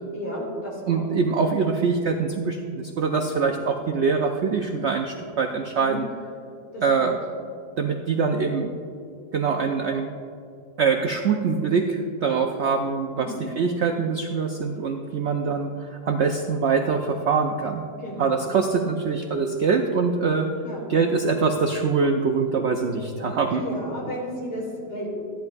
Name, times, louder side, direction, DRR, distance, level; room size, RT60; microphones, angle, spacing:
voice 1, 0.1-1.0 5.8-6.0 6.7-7.1 13.2-13.4 18.0-18.7 20.6-20.9 23.5-25.1, equal, 75° left, -4 dB, 3.4 m, -33 dB
voice 2, 0.9-6.1 6.8-7.2 7.8-8.7 9.3-10.1 10.8-17.8 18.2-20.5 20.9-23.6, right 5 dB, 70° right, 4 dB, 0.6 m, -24 dB
14.0 x 10.5 x 2.6 m, 2.4 s
omnidirectional pair, 1.8 m